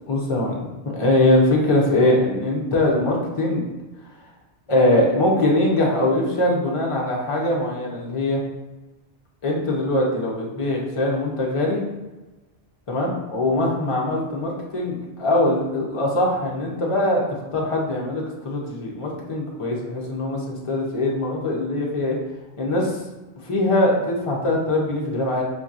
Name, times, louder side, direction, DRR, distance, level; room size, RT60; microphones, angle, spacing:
voice 1, 0.1-3.7 4.7-8.4 9.4-11.8 12.9-22.2 22.6-23.0 23.4-25.4, left 1 dB, 30° left, -3 dB, 0.8 m, -22 dB
5.2 x 2.8 x 2.5 m, 1.1 s
omnidirectional pair, 1.1 m